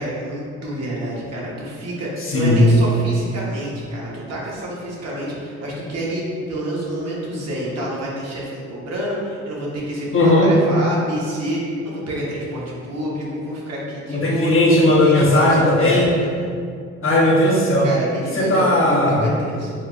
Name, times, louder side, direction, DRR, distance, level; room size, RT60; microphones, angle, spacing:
voice 1, 0.0-14.5 15.0-16.5 17.8-19.7, right 1 dB, 55° right, -5 dB, 1.2 m, -28 dB
voice 2, 2.2-2.8 10.1-10.5 14.1-16.1 17.0-17.9 18.3-19.3, left 1 dB, 45° left, -4 dB, 0.9 m, -16 dB
4.3 x 3.6 x 2.5 m, 2.2 s
cardioid pair, 90°, 30 cm